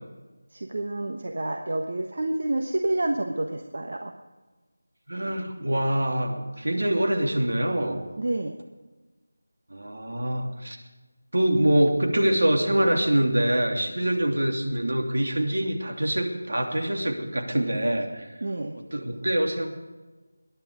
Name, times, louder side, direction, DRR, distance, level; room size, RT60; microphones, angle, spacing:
voice 1, 0.5-4.1 8.2-8.6 18.4-18.8, right 2 dB, 50° right, 4 dB, 1.2 m, -29 dB
voice 2, 5.1-8.1 9.7-10.8 11.3-18.3 18.7-19.7, right 1 dB, 70° right, 2 dB, 3.1 m, -25 dB
22.5 x 10.5 x 5.1 m, 1.2 s
figure-of-eight pair, 175°, 0 cm